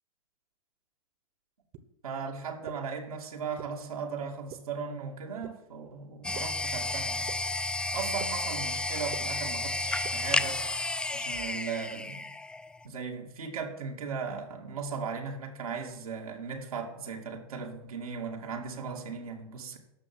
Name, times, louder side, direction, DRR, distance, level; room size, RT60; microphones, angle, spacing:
sound 1, 1.7-1.8 2.7-2.8 3.6-3.7 4.5-4.6 5.4-5.5 6.3-6.4 7.3-7.4 8.2-8.3 9.1-9.2 10.0-10.1, right 14 dB, 45° right, 1.5 m, -41 dB
voice 1, 2.0-7.3 7.9-10.6 11.1-12.3 12.8-19.8, right 5 dB, 90° right, 0 dB, 2.4 m, -37 dB
sound 2, 6.2-12.9, left 2 dB, 5° left, 0.3 m, -32 dB
13.5 x 5.6 x 7.7 m, 0.88 s
hypercardioid pair, 115°, 18 cm